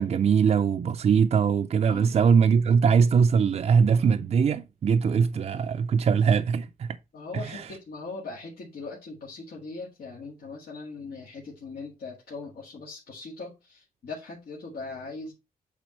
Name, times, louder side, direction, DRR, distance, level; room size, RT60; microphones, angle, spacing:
voice 1, 0.0-7.0 7.3-7.8, right 6 dB, 45° right, 0.4 m, -22 dB
voice 2, 1.9-2.3 7.1-15.3, left 3 dB, 85° left, 1.9 m, -40 dB
8.4 x 3.5 x 4.3 m
wide cardioid pair, 150°, 15 cm